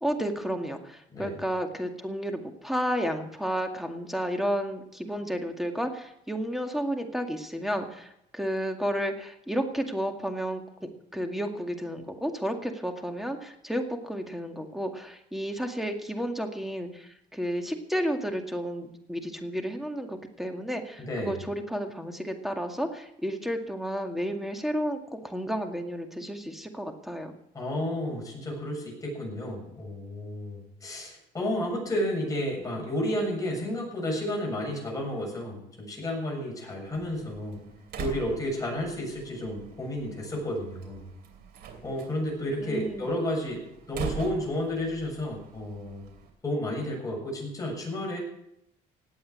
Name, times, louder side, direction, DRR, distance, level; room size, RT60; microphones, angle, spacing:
voice 1, 0.0-27.3 42.6-43.2, equal, ahead, 5 dB, 2.1 m, -32 dB
voice 2, 21.0-21.4 27.5-37.6 38.0-41.1 41.8-43.6 43.9-46.0 46.4-48.2, left 1 dB, 20° left, -1 dB, 7.3 m, -32 dB
Slam, 36.9-46.3, right 6 dB, 70° right, 3.0 m, -42 dB
17.5 x 8.7 x 8.1 m, 0.80 s
cardioid pair, 110°, 17 cm